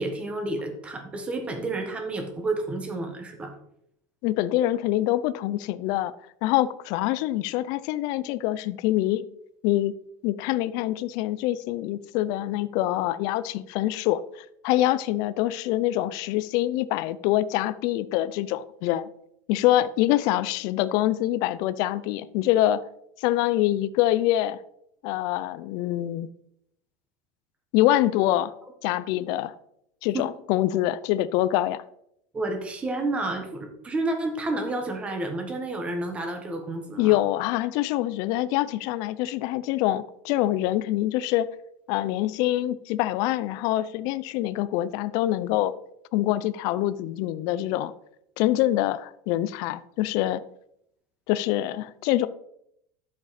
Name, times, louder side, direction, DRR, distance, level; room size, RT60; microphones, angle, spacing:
voice 1, 0.0-3.5 30.1-30.3 32.3-37.2, right 2 dB, 10° right, 1.3 m, -30 dB
voice 2, 4.2-6.1 6.4-9.2 9.6-9.9 10.2-19.1 19.5-22.8 23.2-24.6 25.0-26.3 27.7-28.5 28.8-29.5 30.0-31.8 37.0-41.5 41.9-45.7 46.1-47.9 48.4-50.4 51.3-52.3, left 14 dB, 45° left, 0.5 m, -25 dB
11.0 x 7.3 x 4.1 m
supercardioid pair, 175°, 9 cm